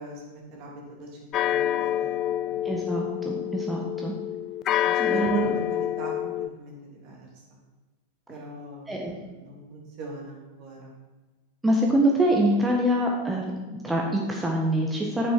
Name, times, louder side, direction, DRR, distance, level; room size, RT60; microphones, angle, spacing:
voice 1, 0.0-2.7 4.8-7.4 8.3-10.9, right 2 dB, 45° right, -1 dB, 3.1 m, -39 dB
sound 1, 1.3-6.5, left 12 dB, 35° left, 0.3 m, -27 dB
voice 2, 2.6-4.1 5.0-5.5 8.9-9.1 11.6-13.5 13.8-15.3, right 1 dB, 10° right, -1 dB, 1.5 m, -24 dB
9.8 x 8.9 x 4.7 m, 1.3 s
figure-of-eight pair, 90°, 0 cm